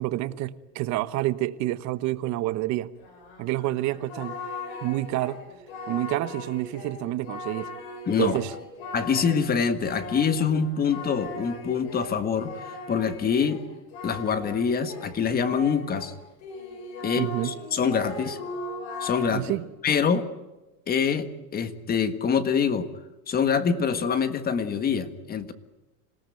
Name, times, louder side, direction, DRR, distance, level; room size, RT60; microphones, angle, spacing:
voice 1, 0.0-2.9 3.4-4.4 4.8-5.4 5.9-7.7 8.2-8.5 17.2-17.5 19.3-19.6, right 16 dB, 45° right, 14 dB, 1.1 m, -28 dB
Singing, 3.0-16.1 16.4-19.6, left 2 dB, 65° left, 7.9 m, -39 dB
voice 2, 8.1-8.4 8.9-12.6 12.9-13.6 14.0-16.1 17.0-18.4 19.0-19.5 19.8-20.2 20.9-22.9 23.3-25.5, left 6 dB, 20° left, 11 dB, 1.6 m, -25 dB
26.5 x 18.0 x 9.2 m, 1.1 s
supercardioid pair, 145°, 41 cm